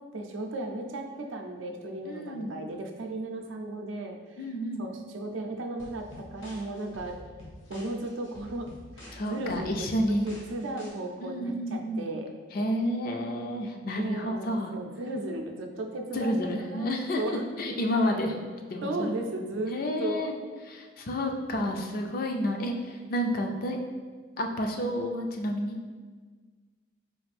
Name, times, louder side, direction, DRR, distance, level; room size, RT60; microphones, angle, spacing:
voice 1, 0.1-4.2 4.8-7.2 7.7-8.7 9.0-9.9 10.2-12.3 13.9-17.4 18.0-18.1 18.8-19.7 20.0-20.3, right 2 dB, 90° right, 3 dB, 0.5 m, -35 dB
voice 2, 2.1-2.5 4.4-4.9 9.1-10.3 11.2-12.1 12.5-14.7 16.1-18.3 18.7-19.2 19.7-20.3 20.7-23.8 24.4-25.8, equal, 50° left, 3 dB, 0.4 m, -30 dB
sound 1, 5.8-10.9, left 1 dB, 80° left, 1.0 m, -48 dB
4.3 x 2.5 x 3.3 m, 1.5 s
head